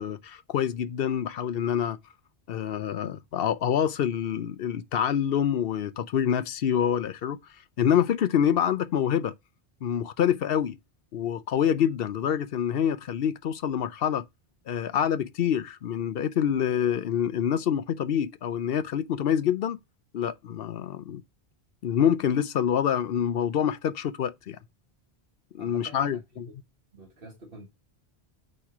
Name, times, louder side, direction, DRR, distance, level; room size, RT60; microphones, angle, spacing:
voice 1, 0.0-2.0 2.5-7.4 7.8-9.3 9.8-10.8 11.1-14.2 14.7-19.8 20.1-21.2 21.8-24.6 25.5-26.5, left 9 dB, 70° left, 0.8 m, -26 dB
voice 2, 25.6-26.2 26.9-27.7, right 2 dB, 65° right, 1.8 m, -46 dB
8.6 x 3.3 x 5.9 m
omnidirectional pair, 1.1 m